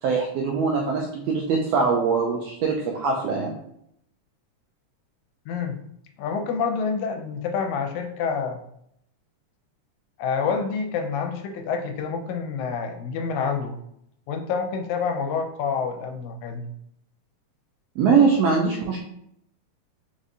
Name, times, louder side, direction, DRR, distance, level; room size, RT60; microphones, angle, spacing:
voice 1, 0.0-3.5 18.0-19.0, right 5 dB, 90° right, 0 dB, 1.5 m, -22 dB
voice 2, 5.5-5.8 6.2-8.6 10.2-13.8 14.3-16.7, left 5 dB, 80° left, 5 dB, 1.9 m, -27 dB
4.7 x 4.1 x 2.6 m, 0.73 s
omnidirectional pair, 3.5 m